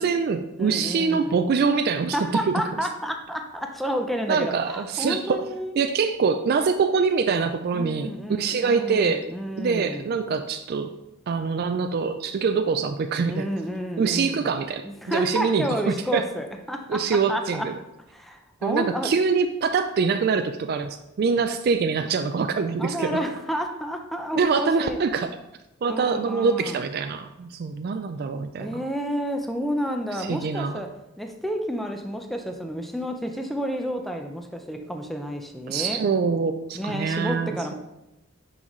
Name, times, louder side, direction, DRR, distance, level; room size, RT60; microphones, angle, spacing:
voice 1, 0.0-2.2 4.3-5.4 5.8-9.3 9.6-10.9 11.3-13.5 14.0-16.2 16.9-17.7 18.6-23.2 24.4-25.3 25.8-28.8 30.2-30.8 35.7-37.7, right 5 dB, 50° right, 7 dB, 0.3 m, -24 dB
voice 2, 0.6-1.4 2.1-5.7 7.7-10.1 13.3-14.5 14.8-17.0 17.3-17.7 18.1-19.1 22.8-25.0 25.9-26.8 28.6-30.9 31.2-36.0 36.7-37.7, equal, ahead, 4 dB, 0.6 m, -30 dB
9.5 x 4.0 x 3.1 m, 0.92 s
head